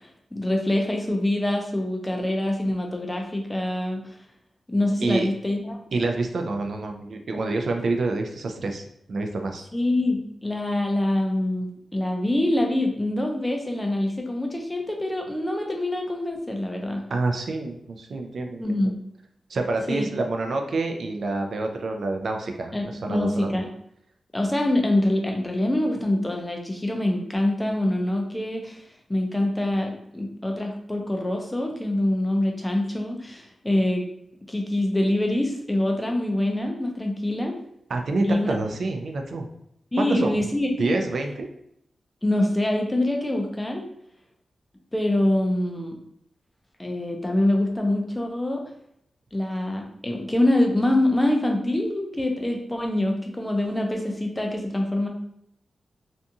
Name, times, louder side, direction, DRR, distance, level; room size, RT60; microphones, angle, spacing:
voice 1, 0.3-4.0 4.7-5.8 9.7-17.0 18.6-19.0 19.9-20.1 22.7-23.7 24.3-28.8 29.1-34.1 34.5-37.5 38.2-38.5 39.9-41.0 42.2-43.9 44.9-45.9 46.8-48.6 49.3-55.1, left 1 dB, 10° left, 2 dB, 0.4 m, -25 dB
voice 2, 5.9-9.7 17.1-18.8 19.5-23.6 37.9-39.5 40.0-40.5 40.8-41.5, right 3 dB, 60° right, 4 dB, 0.3 m, -27 dB
2.5 x 2.3 x 2.7 m, 0.74 s
wide cardioid pair, 155°, 0 cm